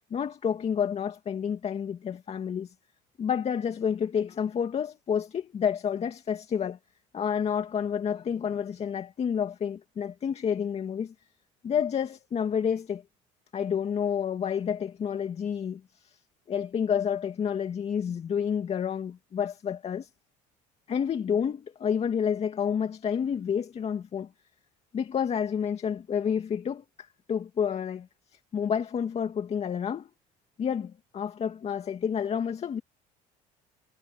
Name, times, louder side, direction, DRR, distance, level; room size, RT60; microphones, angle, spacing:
voice 1, 0.1-2.7 3.2-6.8 7.1-11.1 11.6-13.0 13.5-16.2 16.5-20.1 20.9-24.3 24.9-28.1 28.5-30.1 30.6-32.8, left 7 dB, 40° left, 2.2 m, -29 dB
supercardioid pair, 95°, 17 cm